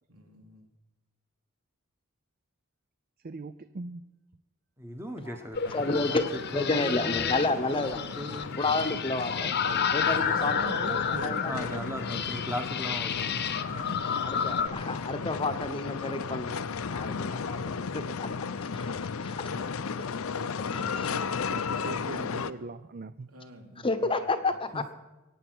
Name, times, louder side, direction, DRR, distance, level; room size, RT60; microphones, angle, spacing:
voice 1, 0.1-0.7 9.4-10.4 17.2-17.5 23.3-24.0, right 2 dB, 80° right, 2 dB, 3.0 m, -47 dB
voice 2, 3.2-4.1 10.1-12.2 13.7-14.1 20.4-23.3, right 3 dB, 40° right, 13 dB, 0.5 m, -41 dB
voice 3, 4.8-5.8 6.1-6.2 6.5-7.8 8.2-8.6 11.4-13.8 24.7-24.9, equal, 10° right, 6 dB, 1.2 m, -38 dB
sound 1, 5.5-14.7, left 7 dB, 50° left, 0.9 m, -31 dB
sound 2, 5.6-22.5, left 5 dB, 70° left, 0.6 m, -35 dB
voice 4, 5.7-6.2 6.5-8.0 8.3-11.5 14.2-16.6 16.9-18.3 18.6-19.5 20.0-20.1 20.7-21.2 22.1-22.2 23.8-24.8, left 3 dB, 25° left, 9 dB, 0.9 m, -31 dB
23.0 x 9.1 x 6.2 m, 1.1 s
head